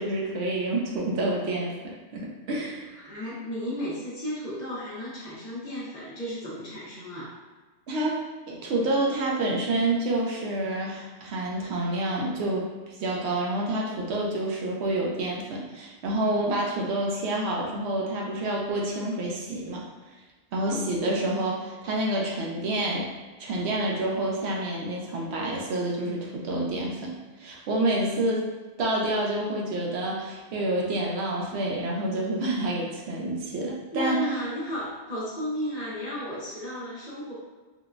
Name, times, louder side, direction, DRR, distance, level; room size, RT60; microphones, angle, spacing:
voice 1, 0.0-2.8 7.9-8.2 8.5-19.8 20.5-23.1 23.4-27.1 27.4-28.4 28.8-34.2, right 1 dB, 70° right, -2 dB, 0.8 m, -28 dB
voice 2, 3.0-7.3 20.6-20.9 33.9-37.3, equal, 45° left, -8 dB, 0.8 m, -34 dB
3.7 x 2.1 x 2.4 m, 1.3 s
omnidirectional pair, 1.2 m